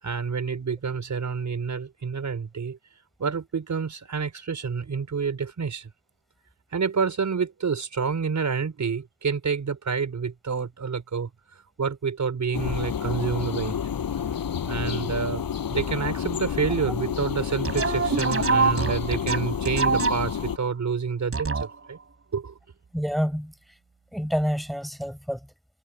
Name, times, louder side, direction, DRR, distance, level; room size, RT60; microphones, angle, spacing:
voice 1, 0.0-2.8 3.2-5.9 6.7-11.3 11.8-13.8 14.7-15.4 15.7-22.0 22.3-22.5, right 5 dB, 55° right, 5.3 m, -28 dB
sound 1, 12.5-20.6, left 8 dB, 80° left, 6.8 m, -30 dB
sound 2, 17.6-20.5 21.3-22.0, right 4 dB, 40° right, 7.7 m, -25 dB
voice 2, 22.9-23.7 24.1-25.5, equal, ahead, 5.2 m, -28 dB
wide cardioid pair, 110°, 35 cm